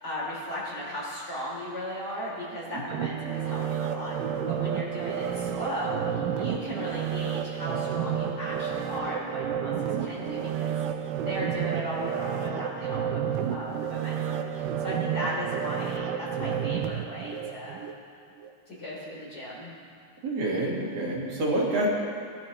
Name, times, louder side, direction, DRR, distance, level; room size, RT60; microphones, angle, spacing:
voice 1, 0.0-10.8 11.2-17.8 18.7-19.7, equal, 30° left, -7 dB, 3.7 m, -36 dB
sound 1, 2.9-18.0 18.4-18.5, right 8 dB, 90° right, 2.3 m, -31 dB
voice 2, 20.2-21.9, right 1 dB, 55° right, -5 dB, 2.9 m, -27 dB
20.0 x 11.5 x 3.1 m, 2.3 s
omnidirectional pair, 3.8 m